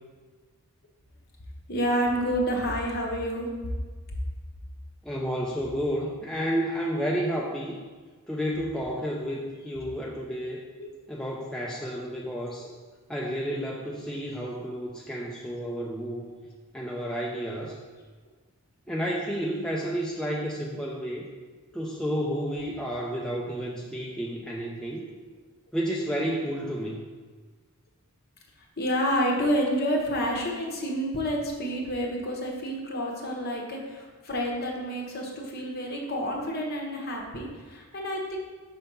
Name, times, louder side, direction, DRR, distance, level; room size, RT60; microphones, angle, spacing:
voice 1, 1.7-3.5 9.8-9.9 10.8-10.9 18.9-19.0 28.8-38.4, equal, 45° left, 0 dB, 1.0 m, -29 dB
voice 2, 5.0-7.8 8.3-10.6 11.1-12.7 13.1-16.3 16.7-17.8 18.9-21.2 21.7-25.1 25.7-27.0, equal, 5° left, -3 dB, 0.4 m, -31 dB
5.7 x 3.4 x 5.4 m, 1.4 s
head